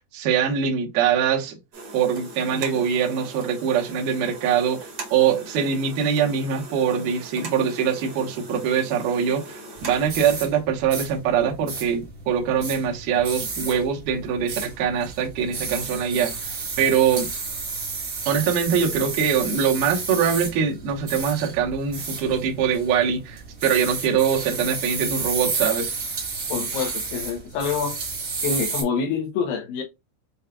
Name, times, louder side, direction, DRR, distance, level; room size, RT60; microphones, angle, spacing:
voice 1, 0.1-1.6 1.9-4.8 5.1-16.3 16.8-17.3 18.3-25.9, right 7 dB, 70° right, 2.4 m, -23 dB
sound 1, 1.7-10.1, right 3 dB, 85° right, 1.0 m, -40 dB
sound 2, 9.8-28.8, right 4 dB, 45° right, 1.6 m, -32 dB
voice 2, 26.5-28.0 28.4-29.8, left 6 dB, 80° left, 2.1 m, -26 dB
6.9 x 2.3 x 2.2 m
omnidirectional pair, 4.3 m